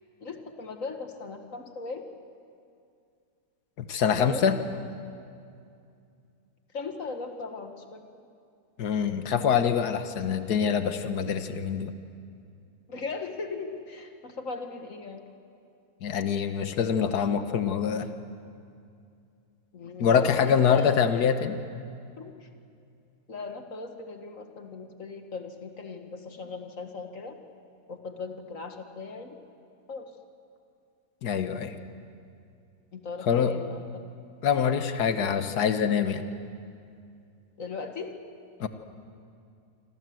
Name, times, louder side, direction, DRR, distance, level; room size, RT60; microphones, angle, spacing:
voice 1, 0.2-2.0 4.2-4.5 6.7-8.0 12.9-15.2 19.7-21.0 22.2-22.5 23.3-27.3 27.9-29.4 29.9-30.0 32.9-33.8 34.5-34.6 37.6-38.1, left 4 dB, 55° left, 5 dB, 2.1 m, -38 dB
voice 2, 3.8-4.6 8.8-11.9 16.0-18.1 20.0-21.6 31.2-31.8 33.2-33.5 34.4-36.2 38.6-38.7, left 7 dB, 80° left, 8 dB, 1.7 m, -25 dB
27.5 x 26.0 x 7.8 m, 2.4 s
omnidirectional pair, 1.7 m